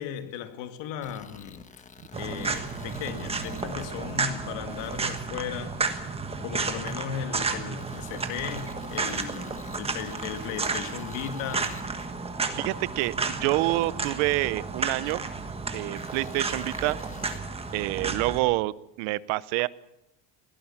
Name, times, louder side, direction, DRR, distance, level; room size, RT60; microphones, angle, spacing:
voice 1, 0.0-1.6 2.1-5.8 6.4-11.8, left 9 dB, 70° left, 2.3 m, -36 dB
sound 1, 1.0-4.2 4.7-5.2 5.9-6.0 6.9-7.0 7.8-12.1 13.0-13.1 14.0-14.1 15.1-15.2 16.0-17.4, left 5 dB, 15° left, 1.2 m, -49 dB
sound 2, 2.1-18.4, right 4 dB, 15° right, 1.4 m, -32 dB
sound 3, 2.2-8.0, right 5 dB, 55° right, 2.1 m, -51 dB
voice 2, 12.4-15.2 15.7-17.0 17.7-19.7, right 20 dB, 75° right, 0.8 m, -27 dB
22.0 x 17.0 x 7.3 m
cardioid pair, 160°, 45 cm